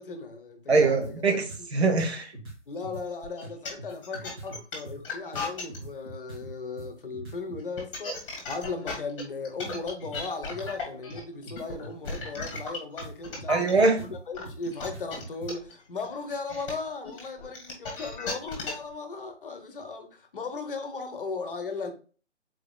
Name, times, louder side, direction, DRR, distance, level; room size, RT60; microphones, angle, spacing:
voice 1, 0.0-1.2 1.6-1.7 2.7-13.6 14.0-21.9, left 4 dB, 50° left, 0.9 m, -37 dB
voice 2, 0.7-2.3 13.5-14.0, right 3 dB, 60° right, 1.2 m, -23 dB
sound 1, 0.8-1.1 1.5-1.6 2.0-3.1 3.4-7.6 9.0-15.5, right 2 dB, 20° right, 1.1 m, -43 dB
sound 2, 3.2-5.8 7.6-13.8 14.3-18.9, left 4 dB, 25° left, 1.6 m, -36 dB
4.9 x 4.2 x 2.3 m
figure-of-eight pair, 145°, 36 cm